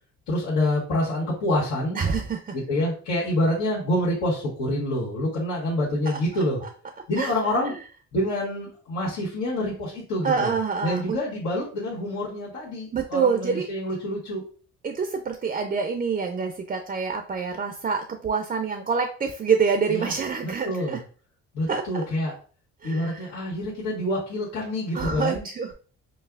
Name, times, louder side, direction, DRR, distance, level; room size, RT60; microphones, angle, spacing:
voice 1, 0.3-2.0 2.5-6.6 7.1-7.7 8.1-10.5 10.8-14.4 19.9-20.1 20.4-21.0 21.5-22.3 22.8-25.4, left 1 dB, 90° left, -6 dB, 1.4 m, -27 dB
voice 2, 2.0-2.5 6.1-6.2 7.2-7.6 10.2-11.2 12.9-13.7 14.8-21.0 21.7-22.0 22.8-23.3 24.9-25.7, right 5 dB, 30° right, 5 dB, 0.4 m, -26 dB
5.3 x 2.0 x 2.4 m, 0.40 s
cardioid pair, 90°, 30 cm